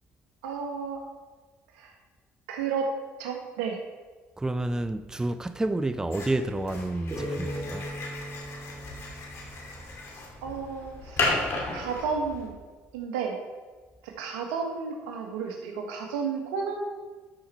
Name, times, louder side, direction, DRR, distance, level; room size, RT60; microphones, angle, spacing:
voice 1, 0.4-1.0 1.7-1.9 2.5-2.9 3.2-3.8 10.4-11.3 11.7-12.5 12.9-13.4 14.0-16.8, right 5 dB, 85° right, 1.6 m, -32 dB
voice 2, 4.4-7.9, right 2 dB, 10° right, 0.5 m, -29 dB
sound 1, 6.1-12.5, left 2 dB, 55° left, 2.7 m, -34 dB
sound 2, 7.1-10.5, equal, 30° right, 2.6 m, -38 dB
12.5 x 5.6 x 4.6 m
supercardioid pair, 80°, 6 cm